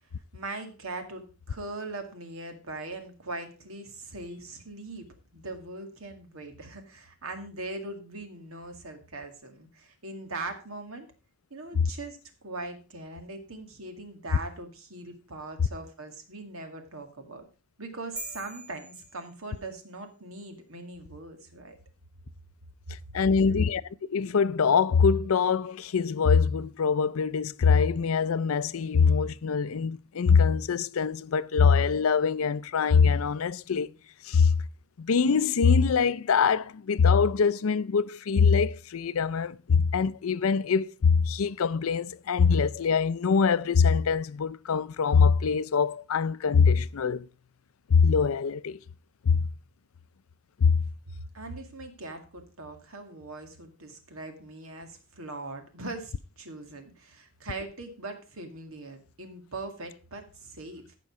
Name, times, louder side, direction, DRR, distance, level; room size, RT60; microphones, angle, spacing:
voice 1, 0.3-5.0 5.3-11.1 11.5-17.4 17.8-21.8 51.1-61.0, right 2 dB, 85° right, 2.0 m, -41 dB
sound 1, 18.2-19.9, equal, 5° right, 2.7 m, -44 dB
voice 2, 23.1-23.8 24.1-33.9 34.2-34.5 35.0-47.3 47.9-48.8 49.3-49.4 50.6-50.7, left 5 dB, 85° left, 0.5 m, -23 dB
14.5 x 5.3 x 4.7 m
head